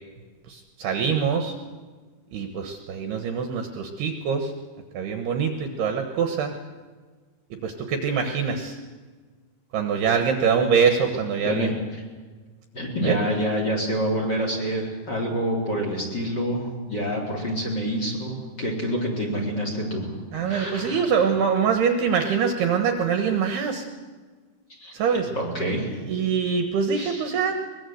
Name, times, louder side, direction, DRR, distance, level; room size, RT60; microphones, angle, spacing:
voice 1, 0.5-1.5 2.3-4.5 4.9-6.5 7.6-8.8 9.7-11.7 13.0-13.2 20.3-23.9 24.9-25.3 26.0-27.5, right 6 dB, 65° right, 5 dB, 2.9 m, -24 dB
voice 2, 12.7-20.2 20.4-21.0 24.7-24.9 25.3-26.0 26.9-27.3, equal, 25° left, 2 dB, 4.0 m, -27 dB
23.0 x 21.5 x 7.9 m, 1.4 s
omnidirectional pair, 5.6 m